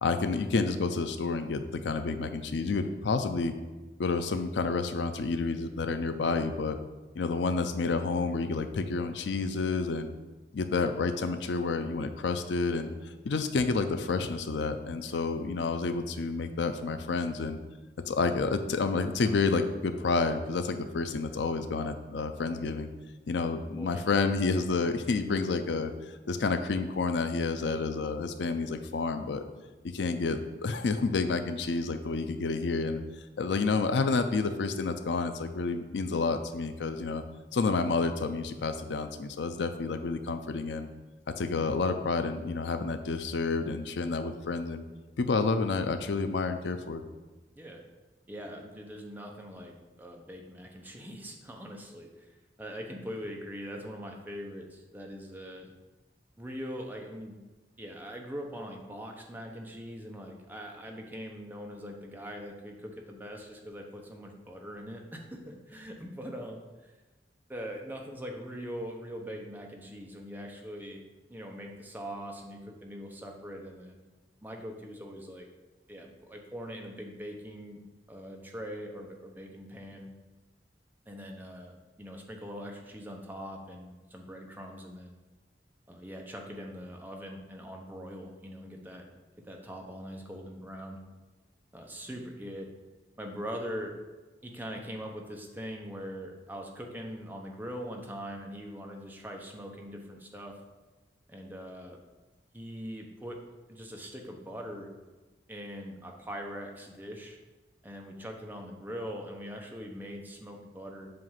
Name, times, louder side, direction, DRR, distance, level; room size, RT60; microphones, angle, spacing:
voice 1, 0.0-3.5 4.0-6.8 7.2-10.1 10.5-12.9 13.2-17.6 18.1-22.9 23.3-29.4 29.9-33.0 33.4-37.2 37.5-40.9 41.4-44.8 45.2-47.0, left 4 dB, 85° left, 8 dB, 0.5 m, -29 dB
voice 2, 23.7-24.1 47.6-47.8 48.3-55.7 56.4-57.4 57.8-66.9 67.5-71.0 71.3-74.0 74.4-75.5 75.9-77.8 78.1-80.1 81.1-85.2 85.9-89.1 89.4-91.0 91.7-92.7 93.2-94.0 94.4-100.6 101.3-102.0 102.5-103.4 103.7-104.9 105.5-107.4 107.8-111.1, equal, 10° right, 1 dB, 0.7 m, -42 dB
7.6 x 2.5 x 5.6 m, 1.2 s
head